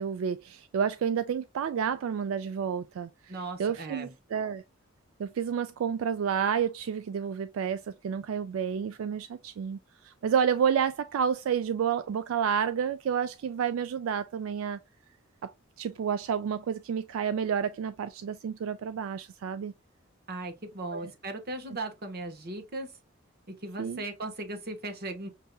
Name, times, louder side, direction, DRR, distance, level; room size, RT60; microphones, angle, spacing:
voice 1, 0.0-4.6 5.2-14.8 15.4-19.7 20.9-21.1 23.8-24.0, right 7 dB, 75° right, 0.3 m, -30 dB
voice 2, 3.3-4.1 20.3-22.9 23.5-25.3, right 2 dB, 50° right, 1.1 m, -37 dB
6.6 x 2.7 x 2.2 m
head